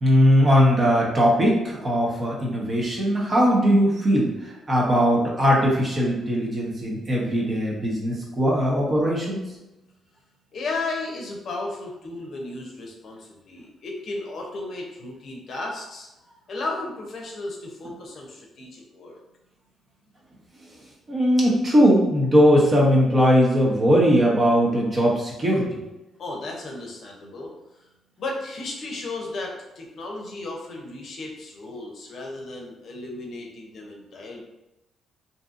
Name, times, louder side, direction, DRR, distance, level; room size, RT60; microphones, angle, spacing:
voice 1, 0.0-9.4 21.1-25.8, equal, 35° right, -3 dB, 0.9 m, -20 dB
voice 2, 10.5-13.2 13.5-16.1 16.5-19.2 26.2-27.5 28.2-34.4, left 2 dB, 60° left, 0 dB, 0.6 m, -34 dB
2.6 x 2.5 x 2.4 m, 0.97 s
cardioid pair, 90°, 0 cm